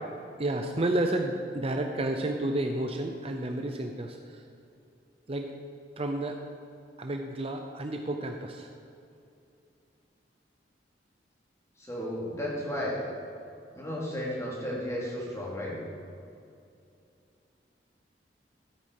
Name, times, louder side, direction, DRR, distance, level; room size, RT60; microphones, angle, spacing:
voice 1, 0.4-4.2 5.3-5.5 6.0-6.4 7.0-8.7, right 1 dB, 35° right, 4 dB, 0.7 m, -31 dB
voice 2, 11.8-13.0 13.7-15.8, equal, 15° left, -5 dB, 2.9 m, -33 dB
13.5 x 8.6 x 4.9 m, 2.5 s
head